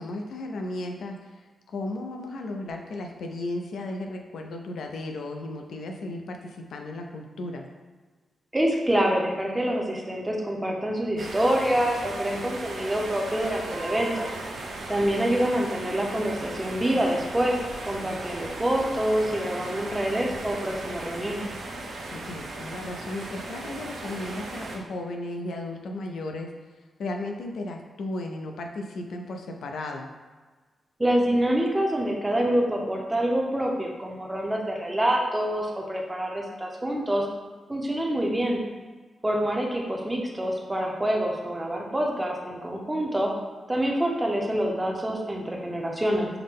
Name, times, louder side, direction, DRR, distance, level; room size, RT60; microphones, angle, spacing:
voice 1, 0.0-7.7 22.1-26.5 27.0-30.1, left 2 dB, 80° left, 3 dB, 0.5 m, -35 dB
voice 2, 8.5-14.3 14.9-17.6 17.9-21.5 31.0-37.3 37.7-38.6 39.2-43.3 43.7-46.3, right 1 dB, 10° right, 0 dB, 0.6 m, -26 dB
sound 1, 11.2-24.8, right 2 dB, 80° right, 0.6 m, -37 dB
5.7 x 2.1 x 3.5 m, 1.4 s
wide cardioid pair, 145°, 0 cm